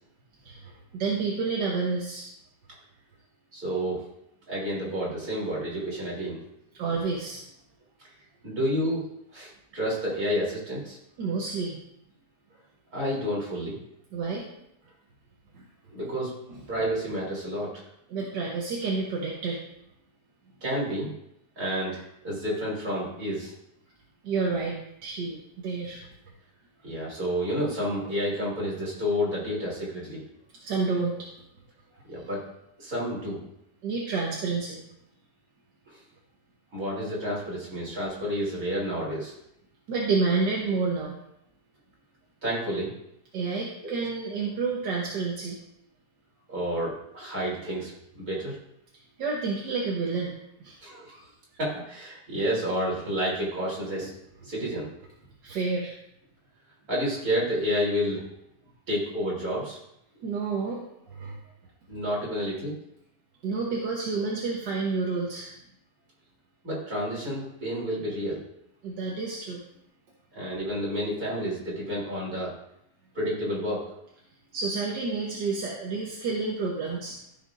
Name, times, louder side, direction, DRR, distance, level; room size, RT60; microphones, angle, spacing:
voice 1, 0.5-2.3 6.7-7.5 11.2-11.8 14.1-14.4 15.5-15.6 16.5-16.6 18.1-19.6 24.2-26.0 30.6-31.1 33.8-34.8 39.9-41.1 43.3-45.6 49.2-50.3 50.6-50.8 55.4-55.9 60.2-61.4 63.4-65.5 68.8-69.6 74.5-77.2, right 4 dB, 80° right, -2 dB, 1.8 m, -29 dB
voice 2, 3.5-4.1 4.5-6.4 8.4-9.0 9.3-11.0 12.9-13.8 15.9-16.3 16.7-17.8 20.6-21.1 21.6-23.5 26.8-30.2 32.1-32.4 32.8-33.4 35.9-36.0 36.7-39.3 42.4-42.9 43.8-43.9 46.5-47.9 48.2-48.6 50.8-51.2 51.6-54.1 54.4-54.9 56.9-58.2 58.9-59.8 61.9-62.8 66.6-68.4 70.3-72.5 73.1-73.8, equal, 55° right, -5 dB, 4.0 m, -30 dB
14.0 x 6.6 x 2.6 m, 0.78 s
omnidirectional pair, 1.9 m